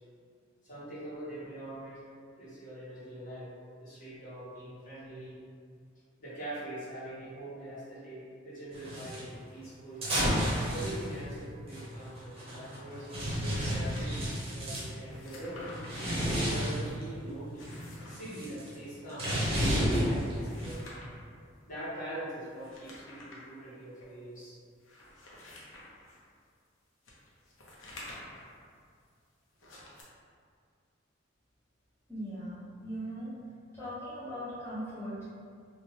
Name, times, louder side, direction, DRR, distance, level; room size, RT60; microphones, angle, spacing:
voice 1, 0.6-2.0 2.4-3.5 3.8-5.4 6.2-10.1 10.7-15.6 16.4-17.7 17.9-19.3 19.6-20.9 21.6-24.6, right 1 dB, 40° left, -12 dB, 1.4 m, -43 dB
sound 1, 8.7-9.2 10.0-14.9 15.6-17.0 17.5-20.7, equal, 30° right, 0.7 m, -32 dB
sound 2, 13.0-14.0 15.0-16.1 17.4-18.3 20.1-21.2 22.5-23.5 24.0-24.1 24.8-26.2 27.0-28.5 29.5-30.0, left 1 dB, 75° left, 0.6 m, -50 dB
voice 2, 32.1-33.4 33.7-35.2, equal, 15° left, -13 dB, 0.6 m, -39 dB
2.7 x 2.2 x 3.1 m, 2.2 s
head